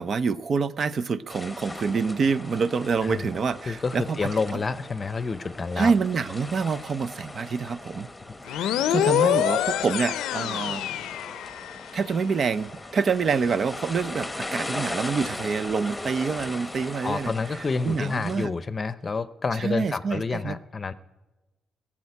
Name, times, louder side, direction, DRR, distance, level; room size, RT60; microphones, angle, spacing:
voice 1, 0.0-4.6 5.8-8.1 8.5-10.8 11.9-17.3 17.8-18.5 19.5-20.6, right 5 dB, 50° right, 15 dB, 0.5 m, -27 dB
sound 1, 1.3-18.5, left 2 dB, 10° left, 1.0 m, -39 dB
voice 2, 3.7-5.9 8.3-8.4 17.0-20.9, left 4 dB, 30° left, 15 dB, 0.7 m, -29 dB
sound 2, 8.5-12.0, left 11 dB, 85° left, 0.5 m, -25 dB
sound 3, 9.9-18.6, right 1 dB, 30° right, 2.4 m, -50 dB
16.0 x 7.3 x 9.8 m, 1.1 s
cardioid pair, 90°, 0 cm